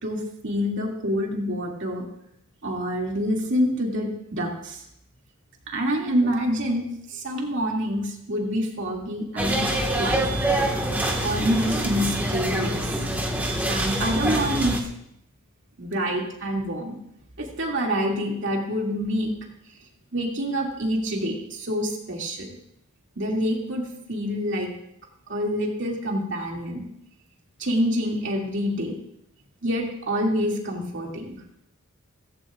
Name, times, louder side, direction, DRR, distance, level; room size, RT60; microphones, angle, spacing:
voice 1, 0.0-2.1 2.6-4.8 5.7-9.7 10.0-10.3 11.2-13.0 13.7-14.8 15.8-17.0 17.4-19.3 20.1-22.5 23.2-23.8 24.1-24.7 25.3-26.8 27.6-29.0 29.6-31.4, equal, 55° right, -1 dB, 2.4 m, -26 dB
sound 1, 9.4-14.8, right 1 dB, 10° right, 1.6 m, -25 dB
16.5 x 16.0 x 2.5 m, 0.76 s
head